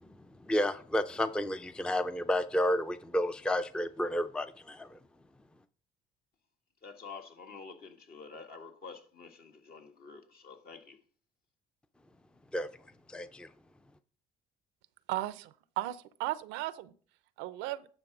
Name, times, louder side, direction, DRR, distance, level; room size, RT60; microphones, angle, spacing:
voice 1, 0.5-5.0 12.5-12.7 13.1-13.5, left 1 dB, 5° left, 0.5 m, -31 dB
voice 2, 6.8-11.0, left 5 dB, 55° left, 1.6 m, -48 dB
voice 3, 15.1-16.9 17.4-17.9, right 16 dB, 80° right, 0.6 m, -36 dB
9.9 x 3.5 x 6.0 m
supercardioid pair, 70°, 19 cm